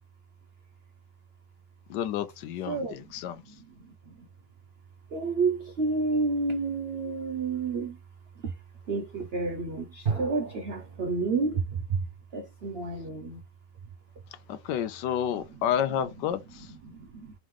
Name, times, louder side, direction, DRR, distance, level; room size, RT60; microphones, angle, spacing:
voice 1, 1.9-3.4 14.5-16.4, left 9 dB, 75° left, 1.2 m, -30 dB
voice 2, 2.6-4.3 5.1-8.0 8.4-8.6 8.9-12.1 12.3-13.4 15.3-15.7 16.0-17.3, right 4 dB, 85° right, 0.5 m, -31 dB
sound 1, 4.0-5.3 10.0-11.9, right 6 dB, 35° right, 1.6 m, -37 dB
3.6 x 3.1 x 3.6 m
omnidirectional pair, 1.9 m